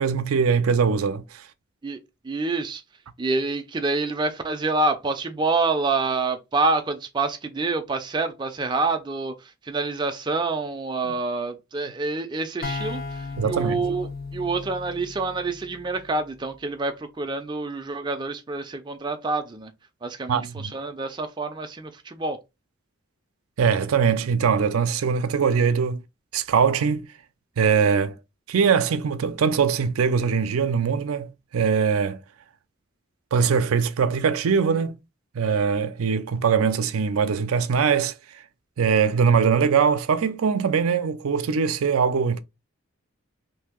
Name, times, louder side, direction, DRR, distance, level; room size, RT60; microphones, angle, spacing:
voice 1, 0.0-1.4 11.0-11.1 13.4-13.8 20.3-20.7 23.6-26.0 26.3-27.1 27.6-28.2 28.5-32.2 33.3-34.9 35.3-38.1 38.8-42.4, right 6 dB, 90° right, 0.4 m, -22 dB
voice 2, 2.2-2.8 3.2-9.3 9.7-19.7 20.0-22.4, right 3 dB, 20° right, 0.4 m, -27 dB
sound 1, 12.6-16.3, left 4 dB, 45° left, 0.4 m, -35 dB
2.7 x 2.7 x 3.6 m
head